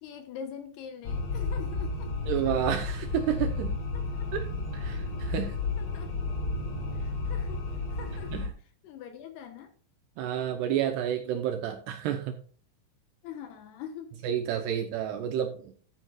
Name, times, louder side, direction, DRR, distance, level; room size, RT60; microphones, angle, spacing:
voice 1, 0.0-2.1 3.9-4.0 5.8-6.1 6.9-7.6 7.9-8.4 8.8-9.7 13.2-14.1 14.6-14.7, left 8 dB, 70° left, 6 dB, 2.9 m, -43 dB
sound 1, 1.0-8.5, left 3 dB, 40° left, 3.2 m, -32 dB
voice 2, 2.3-3.8 4.3-4.4 4.7-5.6 8.3-8.5 10.2-12.4 14.2-15.7, right 9 dB, 80° right, 6 dB, 2.7 m, -30 dB
12.0 x 9.0 x 2.4 m, 0.44 s
omnidirectional pair, 5.2 m